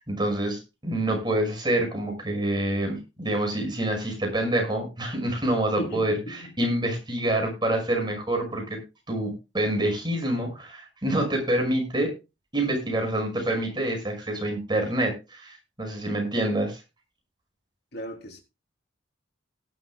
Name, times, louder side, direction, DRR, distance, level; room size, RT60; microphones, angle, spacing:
voice 1, 0.1-8.8 9.1-12.1 12.5-16.8, right 1 dB, 25° right, 5.6 m, -27 dB
voice 2, 5.8-6.7 17.9-18.4, equal, 60° left, 3.3 m, -36 dB
18.0 x 11.5 x 2.3 m
head